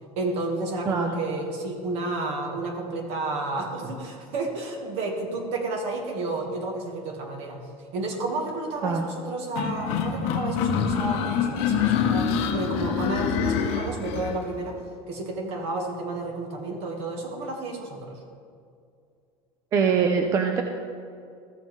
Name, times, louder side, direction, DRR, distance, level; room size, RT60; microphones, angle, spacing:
voice 1, 0.2-7.7 7.9-14.8 15.1-18.2, right 2 dB, 50° right, 2 dB, 1.4 m, -31 dB
voice 2, 0.9-1.2 8.8-9.0 19.7-20.6, right 6 dB, 25° right, 4 dB, 0.4 m, -23 dB
sound 1, 9.6-14.4, left 7 dB, 50° left, 0.7 m, -25 dB
14.0 x 7.2 x 3.1 m, 2.3 s
cardioid pair, 170°, 13 cm